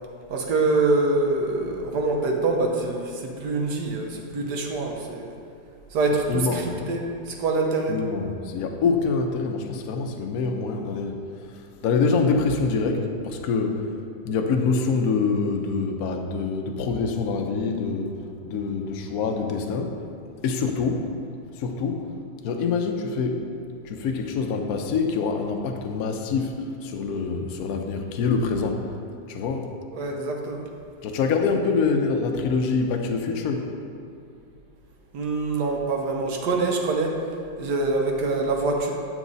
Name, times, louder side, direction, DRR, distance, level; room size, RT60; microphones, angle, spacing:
voice 1, 0.3-5.3 5.9-7.9 29.9-30.7 35.1-37.2 37.6-38.9, right 3 dB, 70° right, 1 dB, 1.4 m, -25 dB
voice 2, 6.3-6.7 7.9-13.9 14.2-20.0 20.4-21.1 21.5-22.1 22.4-23.5 23.8-28.8 29.3-29.7 31.0-33.7, left 4 dB, 65° left, 4 dB, 1.1 m, -25 dB
9.0 x 6.2 x 4.0 m, 2.4 s
omnidirectional pair, 1.9 m